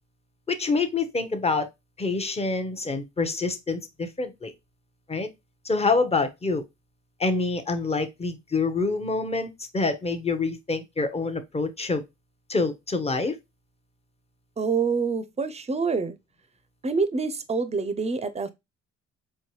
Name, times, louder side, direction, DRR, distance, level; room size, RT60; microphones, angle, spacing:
voice 1, 0.5-1.7 2.0-4.5 5.1-5.3 5.6-6.6 7.2-12.0 12.5-13.4, left 3 dB, 20° left, 0.8 m, -26 dB
voice 2, 14.6-16.2 16.8-18.5, right 4 dB, 20° right, 0.6 m, -26 dB
4.5 x 2.7 x 3.0 m
cardioid pair, 90°, 30 cm